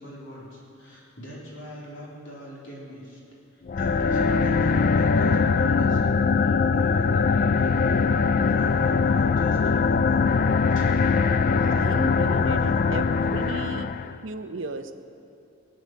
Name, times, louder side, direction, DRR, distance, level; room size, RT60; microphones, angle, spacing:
voice 1, 0.0-3.2 3.5-10.3 10.7-10.9, right 1 dB, 60° left, -5 dB, 3.6 m, -42 dB
sound 1, 3.7-14.2, left 5 dB, 40° left, 0.3 m, -22 dB
voice 2, 11.6-13.9 14.2-14.9, right 2 dB, 60° right, 8 dB, 0.7 m, -35 dB
17.0 x 9.1 x 7.6 m, 2.6 s
head